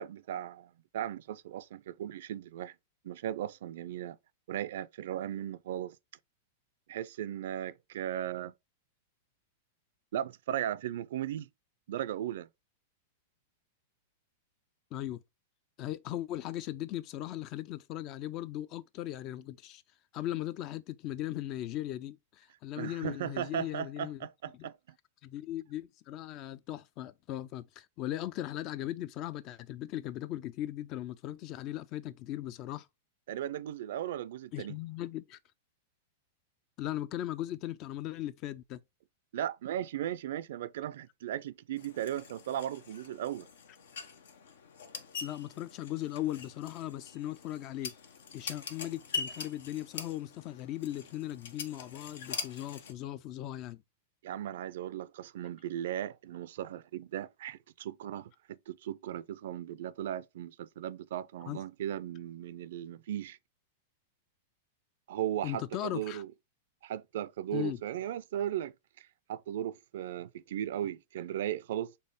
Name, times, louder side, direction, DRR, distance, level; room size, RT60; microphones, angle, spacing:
voice 1, 0.0-2.7 3.0-4.2 4.5-6.0 6.9-8.5 10.1-11.5 11.9-12.5 22.8-24.7 33.3-34.8 39.3-43.5 54.2-63.4 65.1-66.3 66.8-71.9, right 11 dB, 70° right, 0.4 m, -37 dB
voice 2, 14.9-15.2 15.8-19.8 20.1-24.2 24.6-24.7 25.2-32.9 34.5-35.4 36.8-38.8 45.2-47.9 48.3-53.8 61.5-61.6 65.4-66.2 67.5-67.8, left 13 dB, 40° left, 0.4 m, -38 dB
sound 1, 41.8-52.9, left 5 dB, 85° left, 0.9 m, -43 dB
4.3 x 3.2 x 3.5 m
hypercardioid pair, 130°, 0 cm